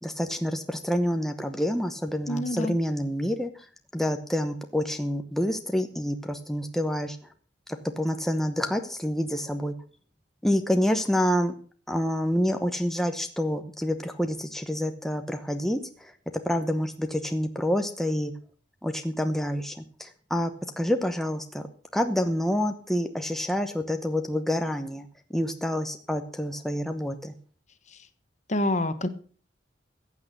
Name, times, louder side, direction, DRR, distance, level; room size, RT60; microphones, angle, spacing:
voice 1, 0.0-3.5 3.9-7.2 8.0-9.7 10.4-11.5 11.9-16.1 16.5-18.3 18.8-20.5 20.8-21.7 21.9-27.3, equal, ahead, 6 dB, 0.9 m, -27 dB
voice 2, 2.3-2.8 28.5-29.1, left 1 dB, 40° left, 11 dB, 1.3 m, -27 dB
15.0 x 8.5 x 6.6 m, 0.42 s
head